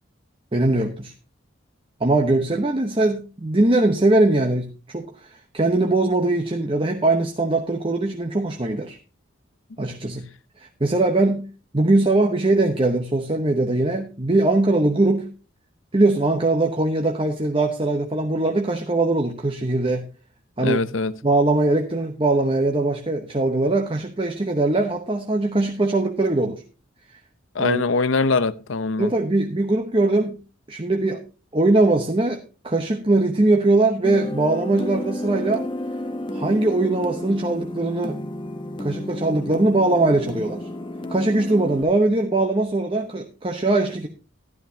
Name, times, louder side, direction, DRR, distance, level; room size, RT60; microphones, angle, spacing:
voice 1, 0.5-1.1 2.0-9.0 9.8-10.3 10.6-11.5 11.7-15.3 15.9-20.1 20.6-20.9 21.2-26.6 27.1-27.2 27.6-27.8 29.0-30.4 30.7-31.2 31.5-35.6 36.3-38.2 38.8-40.7 41.1-44.1, right 2 dB, 25° right, 0.9 m, -21 dB
voice 2, 20.6-21.1 27.5-29.1, left 4 dB, 80° left, 0.7 m, -22 dB
sound 1, 34.0-41.8, left 1 dB, 25° left, 0.9 m, -31 dB
12.5 x 12.0 x 2.8 m
head